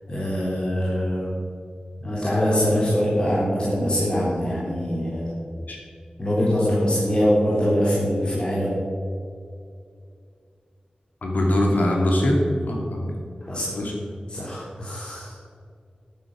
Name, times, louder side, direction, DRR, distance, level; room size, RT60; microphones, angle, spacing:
voice 1, 0.1-1.3 2.0-5.3 6.2-8.8 13.5-13.7 14.3-15.4, equal, 35° left, -8 dB, 3.4 m, -23 dB
voice 2, 11.2-12.4 12.7-13.1 13.7-13.9, left 1 dB, 80° left, -1 dB, 2.8 m, -22 dB
11.5 x 8.9 x 6.4 m, 2.3 s
wide cardioid pair, 80°, 3 cm